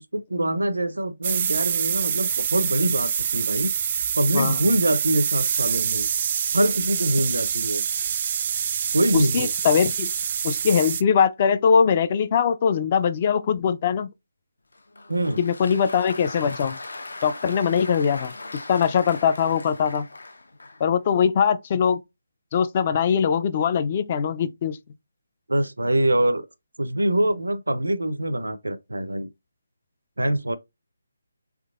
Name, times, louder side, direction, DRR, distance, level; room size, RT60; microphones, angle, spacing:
voice 1, 0.1-3.7 4.2-6.1 6.5-7.8 8.9-9.5 15.1-15.4 25.5-26.5 26.8-29.3 30.2-30.6, right 1 dB, 90° right, 0.6 m, -24 dB
sound 1, 1.2-11.0, right 8 dB, 40° right, 0.4 m, -26 dB
voice 2, 9.1-10.1 10.4-14.1 15.4-16.8 17.2-18.3 18.7-20.1 20.8-22.0 22.5-24.8, left 7 dB, 35° left, 0.4 m, -21 dB
Applause, 14.7-20.9, left 2 dB, 75° left, 0.8 m, -39 dB
3.6 x 3.3 x 2.4 m
figure-of-eight pair, 155°, 0 cm